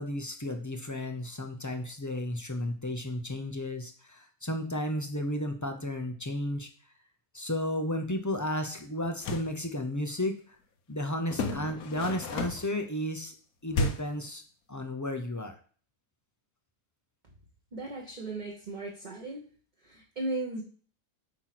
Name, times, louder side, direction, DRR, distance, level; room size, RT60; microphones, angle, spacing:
voice 1, 0.0-6.7 7.3-10.4 10.9-13.3 13.6-14.4 14.7-15.5, left 1 dB, 20° left, 5 dB, 0.5 m, -33 dB
sound 1, 9.0-9.6 11.3-12.8 13.7-14.2, left 2 dB, 70° left, 1.3 m, -32 dB
voice 2, 17.7-19.4 19.8-20.6, right 2 dB, 30° right, -2 dB, 1.2 m, -36 dB
8.7 x 3.0 x 5.9 m, 0.43 s
omnidirectional pair, 1.7 m